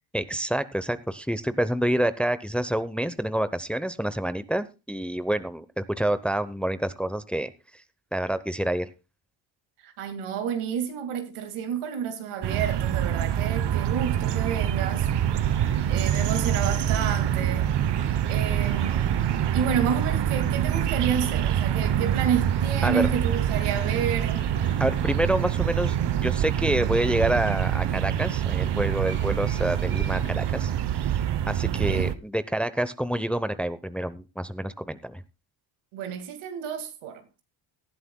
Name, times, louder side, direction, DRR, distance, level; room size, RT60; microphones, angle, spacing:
voice 1, 0.1-7.5 8.1-8.9 22.8-23.1 24.8-26.0 26.2-31.1 31.5-35.2, right 1 dB, ahead, 0.8 m, -27 dB
voice 2, 9.8-15.1 15.9-17.7 18.3-19.3 19.5-24.4 31.6-32.1 35.9-37.4, right 7 dB, 80° right, 2.3 m, -30 dB
sound 1, 12.4-32.1, right 10 dB, 55° right, 0.9 m, -25 dB
sound 2, 13.9-30.8, right 3 dB, 25° right, 2.6 m, -43 dB
18.5 x 11.0 x 2.3 m
supercardioid pair, 70°, 50 cm